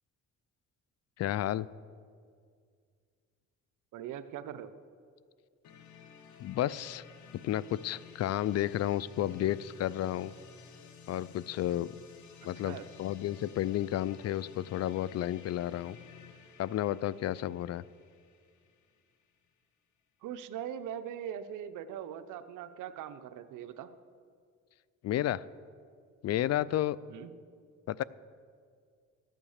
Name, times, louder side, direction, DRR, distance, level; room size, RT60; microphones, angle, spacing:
voice 1, 1.2-1.7 6.4-7.0 7.4-10.3 11.1-11.9 12.4-16.0 16.6-17.8 25.0-25.4 26.2-27.0 27.9-28.0, left 13 dB, 55° left, 20 dB, 0.4 m, -32 dB
voice 2, 3.9-4.7 12.4-12.9 20.2-23.9 27.1-27.3, right 9 dB, 85° right, 11 dB, 0.8 m, -41 dB
sound 1, 5.6-19.4, left 6 dB, 75° left, 1.3 m, -54 dB
14.0 x 9.0 x 6.6 m, 2.1 s
cardioid pair, 90°, 30 cm